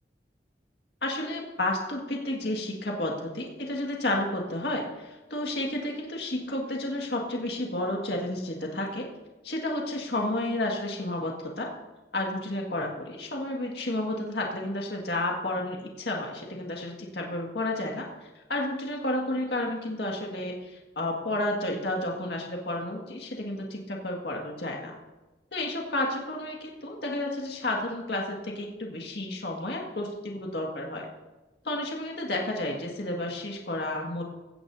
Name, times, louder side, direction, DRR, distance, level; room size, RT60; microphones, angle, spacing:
voice 1, 1.0-9.1 9.4-11.7 12.1-24.9 25.5-31.1 31.6-34.2, left 1 dB, 65° left, -1 dB, 2.0 m, -31 dB
17.0 x 15.0 x 2.7 m, 1.1 s
head